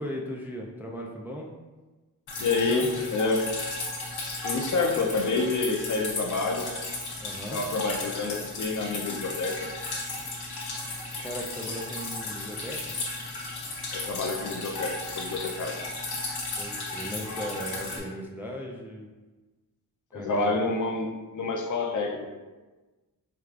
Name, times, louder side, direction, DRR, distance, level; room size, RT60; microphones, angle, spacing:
voice 1, 0.0-1.5 2.7-3.1 7.2-7.6 11.2-13.0 16.6-19.1 20.1-20.5, equal, 5° right, -1 dB, 0.3 m, -37 dB
Drip, 2.3-18.0, left 2 dB, 80° left, 0.9 m, -35 dB
voice 2, 2.4-3.5 4.4-6.7 7.5-9.7 13.9-15.8 20.1-22.3, left 3 dB, 50° left, 2 dB, 0.5 m, -28 dB
4.6 x 2.3 x 2.4 m, 1.2 s
cardioid pair, 75°, 38 cm